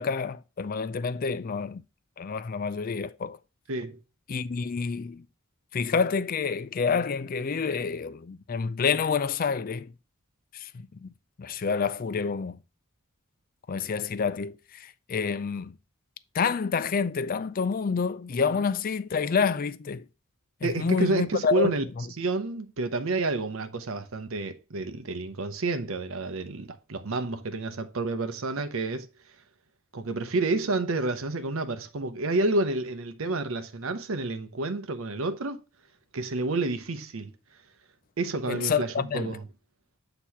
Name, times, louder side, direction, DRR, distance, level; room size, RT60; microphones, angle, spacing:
voice 1, 0.0-1.8 2.2-3.4 4.3-5.2 5.7-9.9 10.5-11.1 11.4-12.6 13.7-15.7 16.3-20.0 20.6-22.0 38.5-39.4, left 5 dB, 40° left, 0.4 m, -28 dB
voice 2, 20.6-21.8 22.2-29.1 29.9-35.6 36.1-37.3 38.2-39.4, right 2 dB, 70° right, 0.7 m, -29 dB
8.1 x 3.0 x 5.6 m
head